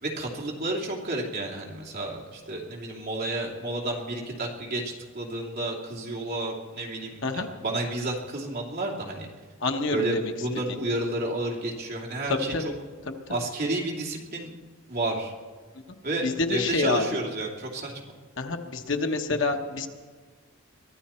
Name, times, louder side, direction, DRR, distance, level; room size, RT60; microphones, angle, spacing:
voice 1, 0.0-9.3 9.9-12.7 13.3-14.5 14.9-15.3 16.0-17.9, right 2 dB, 45° right, -2 dB, 2.7 m, -31 dB
voice 2, 9.6-10.3 12.3-12.7 13.1-13.3 15.9-16.0 16.2-17.0 18.4-19.9, left 3 dB, 60° left, 5 dB, 1.1 m, -27 dB
23.0 x 14.0 x 4.4 m, 1.5 s
head